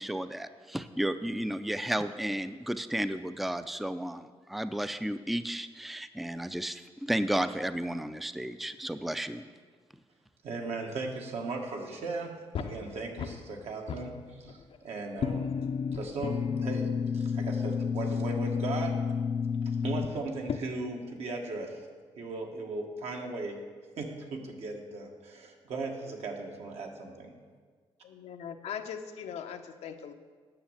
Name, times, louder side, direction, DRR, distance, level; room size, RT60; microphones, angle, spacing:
voice 1, 0.0-9.4, right 1 dB, ahead, 11 dB, 0.4 m, -33 dB
voice 2, 10.4-15.5 15.9-16.9 17.1-19.0 19.8-21.9 22.2-23.6 24.0-27.3, right 3 dB, 75° right, 1 dB, 1.7 m, -37 dB
sound 1, 12.5-13.6 13.9-14.8 15.2-20.6, left 6 dB, 55° left, 0.6 m, -32 dB
voice 3, 28.0-30.1, left 7 dB, 80° left, 6 dB, 0.8 m, -40 dB
9.8 x 6.4 x 7.4 m, 1.5 s
cardioid pair, 90°, 11 cm